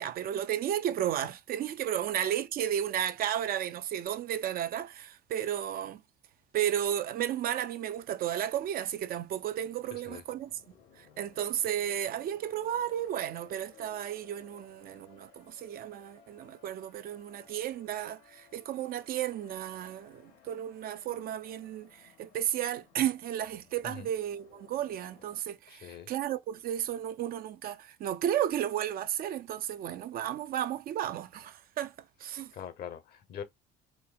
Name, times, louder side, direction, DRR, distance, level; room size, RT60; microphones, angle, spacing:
voice 1, 0.0-6.0 6.5-10.5 11.0-31.9 32.2-32.5, right 11 dB, 55° right, 0.5 m, -33 dB
sound 1, 9.7-25.4, left 8 dB, 85° left, 2.0 m, -60 dB
voice 2, 9.9-10.2 23.8-24.1 25.7-26.1 32.5-33.4, left 8 dB, 60° left, 0.9 m, -43 dB
4.4 x 2.6 x 2.4 m
supercardioid pair, 80°, 18 cm